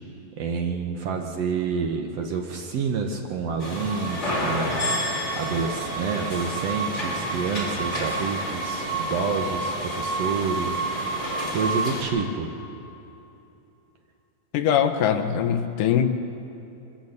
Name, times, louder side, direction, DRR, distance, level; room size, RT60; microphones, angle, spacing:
voice 1, 0.4-10.8 11.5-12.5, right 5 dB, 75° right, 2 dB, 1.4 m, -28 dB
sound 1, 3.6-12.0, right 1 dB, 20° left, 3.3 m, -28 dB
voice 2, 14.5-16.1, left 9 dB, 70° left, 7 dB, 2.2 m, -22 dB
24.0 x 14.5 x 8.0 m, 2.8 s
omnidirectional pair, 4.4 m